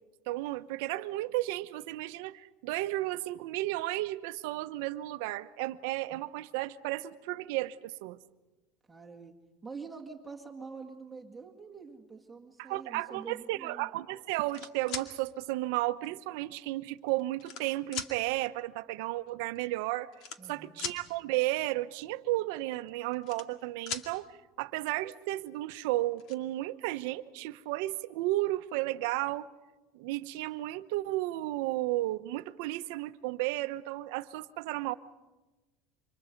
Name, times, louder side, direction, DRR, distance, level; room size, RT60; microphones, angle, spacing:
voice 1, 0.3-8.2 12.6-20.1 20.5-29.5 29.9-34.9, right 17 dB, 70° right, 11 dB, 0.9 m, -33 dB
voice 2, 8.9-9.3 9.6-13.9 20.4-20.9, right 4 dB, 10° right, 1 dB, 2.0 m, -46 dB
sound 1, 14.3-15.1 16.1-16.2 17.0-17.6 17.9-18.1 19.3-19.4 19.6-19.7 20.1-21.0 22.9-23.6 23.9-24.1 25.5-25.6 25.9-26.4, left 6 dB, 50° left, 2.2 m, -39 dB
29.0 x 26.0 x 5.3 m, 1.1 s
supercardioid pair, 155°, 0 cm